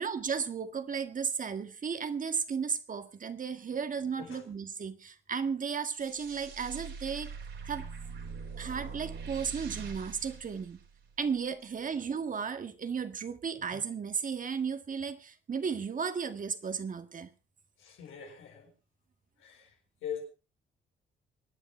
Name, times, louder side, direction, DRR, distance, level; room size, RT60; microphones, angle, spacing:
voice 1, 0.0-7.3 7.6-7.9 8.6-10.8 11.2-17.3, right 6 dB, 40° right, 1.7 m, -34 dB
sound 1, 6.0-11.3, right 5 dB, 70° right, 4.8 m, -43 dB
voice 2, 17.8-18.7 19.4-19.7 20.0-20.2, left 8 dB, 85° left, 5.6 m, -41 dB
24.5 x 9.3 x 4.3 m
cardioid pair, 90°, 20 cm